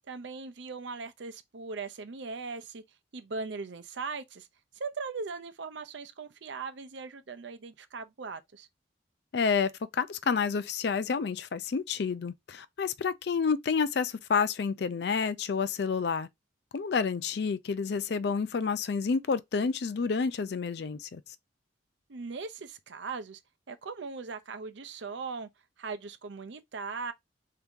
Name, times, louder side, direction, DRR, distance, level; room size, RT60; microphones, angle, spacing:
voice 1, 0.1-2.8 3.1-4.5 4.8-8.7 22.1-23.4 23.7-25.5 25.8-27.1, right 4 dB, 70° right, 0.6 m, -39 dB
voice 2, 9.3-16.3 16.7-21.2, left 5 dB, 60° left, 0.4 m, -29 dB
3.5 x 2.8 x 3.6 m
head